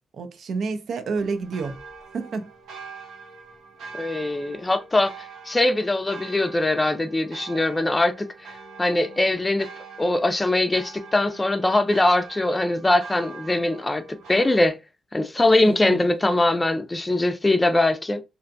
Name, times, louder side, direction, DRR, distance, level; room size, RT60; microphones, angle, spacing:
voice 1, 0.1-1.8 2.1-2.5 15.6-16.1, right 4 dB, 65° right, 0.4 m, -29 dB
sound 1, 1.2-14.7, right 4 dB, 85° right, 0.8 m, -43 dB
voice 2, 3.9-5.1 5.5-8.5 8.8-9.7 10.0-14.8 15.1-18.2, left 2 dB, 20° left, 0.4 m, -22 dB
2.5 x 2.1 x 2.5 m
cardioid pair, 80°, 0 cm